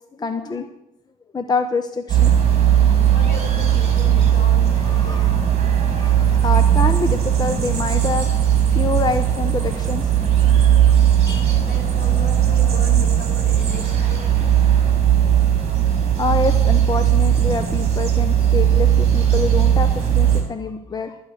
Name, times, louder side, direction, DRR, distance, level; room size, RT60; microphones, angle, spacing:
voice 1, 0.2-0.7 1.3-2.3 2.8-3.0 4.8-5.3 5.9-8.3 8.7-10.1 10.4-10.6 11.2-11.6 16.1-21.2, left 4 dB, 25° left, 8 dB, 0.9 m, -26 dB
sound 1, 2.1-20.4, right 10 dB, 40° right, 3.9 m, -17 dB
voice 2, 3.1-5.5 11.7-14.5, left 4 dB, 65° left, 2 dB, 5.3 m, -37 dB
13.0 x 9.0 x 6.6 m, 0.82 s
cardioid pair, 110°, 17 cm